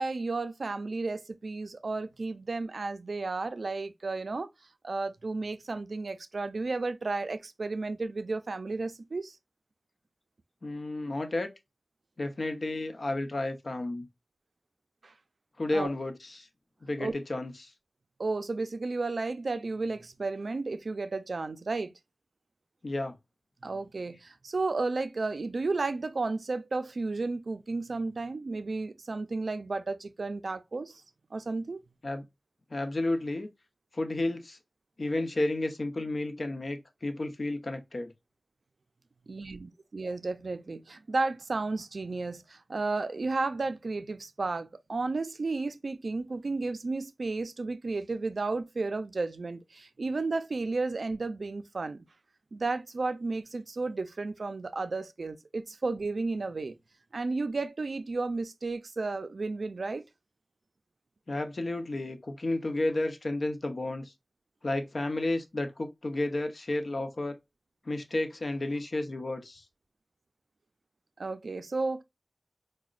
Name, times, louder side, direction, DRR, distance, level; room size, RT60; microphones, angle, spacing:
voice 1, 0.0-4.5 4.8-9.4 15.0-15.1 15.7-15.9 17.0-17.1 18.2-21.9 23.6-31.0 31.3-31.8 39.3-52.0 52.5-56.7 57.1-60.0 71.2-72.0, right 3 dB, 85° right, 0.3 m, -33 dB
voice 2, 10.6-11.5 12.2-14.1 15.6-16.5 16.8-17.7 22.8-23.1 32.0-32.2 32.7-33.5 33.9-34.6 35.0-38.1 61.3-64.1 64.6-67.4 67.9-69.6, left 2 dB, 70° left, 0.7 m, -32 dB
4.9 x 2.1 x 2.4 m
wide cardioid pair, 55°, 0 cm